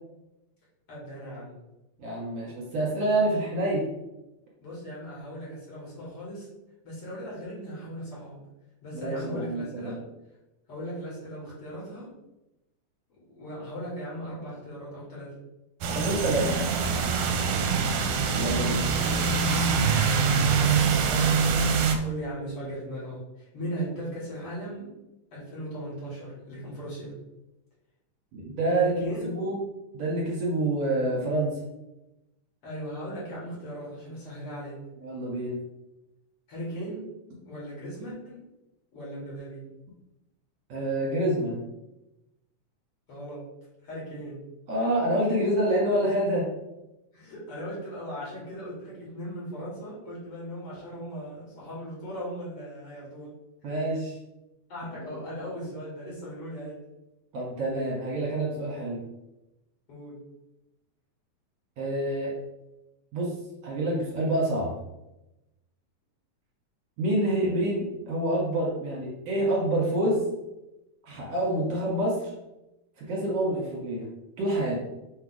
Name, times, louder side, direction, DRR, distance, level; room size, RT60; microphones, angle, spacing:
voice 1, 0.9-1.6 4.6-6.5 6.8-8.4 8.8-10.0 10.7-12.1 13.3-15.3 17.4-17.8 18.8-21.4 22.0-24.9 25.3-27.1 28.7-29.3 32.6-34.8 36.5-37.1 37.4-38.4 38.9-39.7 43.1-43.4 43.8-44.4 47.1-53.3 54.7-56.8 59.9-60.2, equal, 45° left, -6 dB, 3.1 m, -38 dB
voice 2, 2.0-3.8 8.9-10.0 15.9-16.5 18.3-18.9 28.3-29.6 29.9-31.6 35.0-35.6 40.7-41.6 44.7-46.5 53.6-54.1 55.0-55.1 57.3-59.0 61.8-62.3 63.1-63.3 63.6-64.7 67.0-70.2 71.1-72.3 73.0-74.1 74.4-74.8, right 1 dB, 60° right, -4 dB, 2.3 m, -27 dB
sound 1, 15.8-22.0, right 5 dB, 80° right, 2.0 m, -24 dB
6.2 x 3.5 x 4.7 m, 0.95 s
omnidirectional pair, 3.6 m